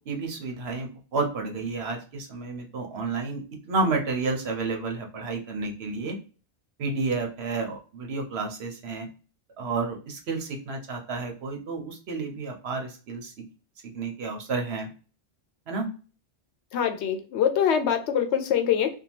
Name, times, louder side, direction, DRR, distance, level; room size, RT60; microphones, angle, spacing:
voice 1, 0.1-6.2 6.8-9.1 9.6-13.3 13.9-14.9 15.7-15.9, right 3 dB, 75° right, 3 dB, 1.0 m, -31 dB
voice 2, 16.7-19.0, left 8 dB, 85° left, 6 dB, 0.9 m, -24 dB
2.7 x 2.3 x 2.8 m, 0.36 s
omnidirectional pair, 1.1 m